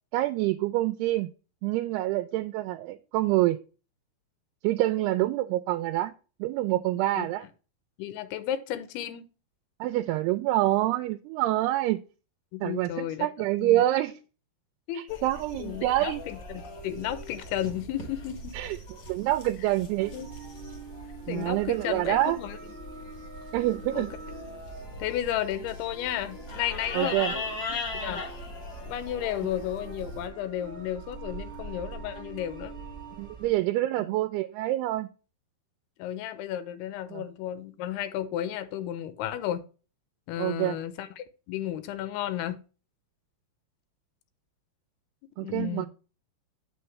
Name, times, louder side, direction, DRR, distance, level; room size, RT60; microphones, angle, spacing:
voice 1, 0.1-1.3 1.6-3.6 4.6-6.1 6.4-7.5 9.8-12.0 12.6-14.2 14.9-16.2 18.5-18.8 19.1-20.1 21.3-22.4 23.5-24.1 26.9-27.3 33.2-35.1 37.1-37.2 40.4-40.8 45.4-45.9, right 15 dB, 85° right, 2.5 m, -26 dB
voice 2, 6.9-7.3 8.0-9.2 12.5-13.3 13.6-13.8 14.9-15.2 15.6-18.5 20.1-20.3 21.3-22.6 23.9-24.1 25.0-27.4 27.7-28.2 28.8-32.7 34.0-34.1 36.0-39.6 40.3-42.6 45.4-45.9, left 11 dB, 85° left, 2.7 m, -33 dB
sound 1, 15.1-30.3, left 2 dB, 55° left, 1.2 m, -40 dB
sound 2, 20.0-33.5, right 3 dB, 30° right, 1.1 m, -45 dB
7.9 x 5.9 x 3.1 m
omnidirectional pair, 4.6 m